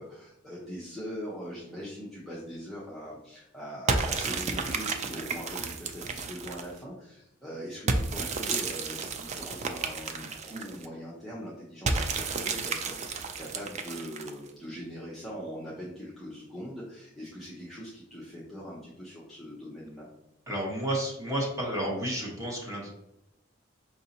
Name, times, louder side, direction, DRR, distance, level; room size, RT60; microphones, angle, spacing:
voice 1, 0.0-20.1, equal, ahead, -8 dB, 0.6 m, -41 dB
sound 1, 3.9-6.8 7.9-10.9 11.9-14.5, right 4 dB, 35° right, 0.3 m, -32 dB
voice 2, 20.5-22.9, right 1 dB, 15° right, -3 dB, 1.1 m, -31 dB
4.9 x 2.7 x 2.7 m, 0.85 s
head